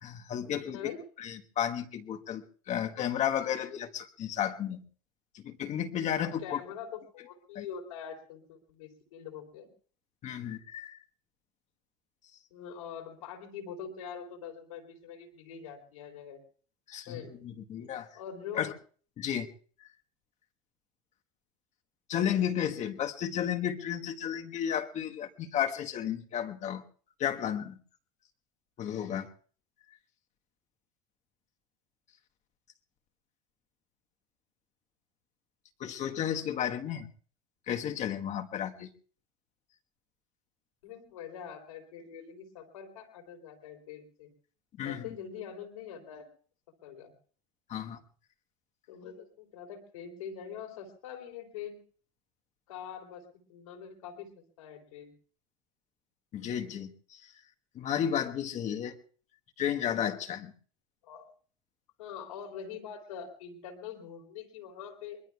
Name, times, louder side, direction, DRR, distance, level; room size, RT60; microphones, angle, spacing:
voice 1, 0.0-0.9 1.2-4.8 5.3-6.6 7.5-7.6 10.2-11.0 16.9-18.1 18.5-18.7 19.2-19.5 22.1-26.8 27.2-27.8 28.8-29.3 35.8-37.1 37.7-38.9 44.8-45.0 47.7-48.0 56.3-57.3 57.7-59.0 59.6-60.5, left 9 dB, 45° left, 5 dB, 1.4 m, -33 dB
voice 2, 6.1-9.7 12.5-16.4 17.1-17.3 18.1-18.7 40.8-44.3 44.8-46.3 46.8-47.1 48.9-51.8 52.7-55.1 61.0-61.3 62.0-65.2, left 8 dB, 85° left, 3 dB, 3.6 m, -44 dB
24.0 x 21.5 x 2.3 m, 0.43 s
hypercardioid pair, 95°, 17 cm